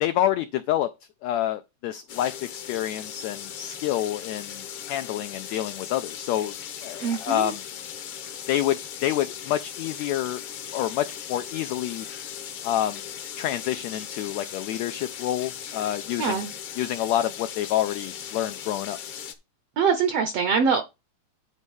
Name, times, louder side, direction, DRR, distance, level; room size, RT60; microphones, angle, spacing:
voice 1, 0.0-0.9 1.2-6.5 6.8-7.6 8.5-10.4 10.7-12.1 12.6-13.0 13.4-16.4 16.8-19.0, left 12 dB, 85° left, 1.5 m, -28 dB
sound 1, 2.1-19.3, left 9 dB, 65° left, 1.4 m, -38 dB
voice 2, 7.0-7.5 16.2-16.5 19.8-20.8, right 6 dB, 75° right, 1.4 m, -23 dB
9.6 x 4.2 x 5.5 m
omnidirectional pair, 3.8 m